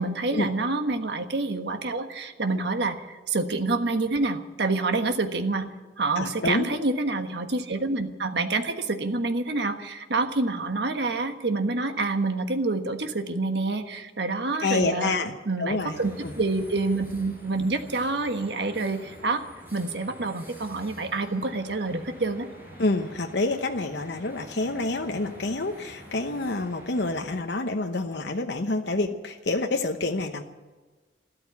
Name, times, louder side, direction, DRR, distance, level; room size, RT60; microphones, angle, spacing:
voice 1, 0.0-5.7 6.0-15.1 15.5-16.1 16.4-19.4 19.7-22.5, right 3 dB, 70° right, 7 dB, 1.4 m, -27 dB
voice 2, 6.2-6.7 14.6-16.3 22.8-30.4, left 2 dB, 75° left, 4 dB, 1.0 m, -28 dB
sound 1, 15.9-27.4, equal, 10° right, 4.7 m, -47 dB
13.5 x 13.0 x 8.4 m, 1.3 s
head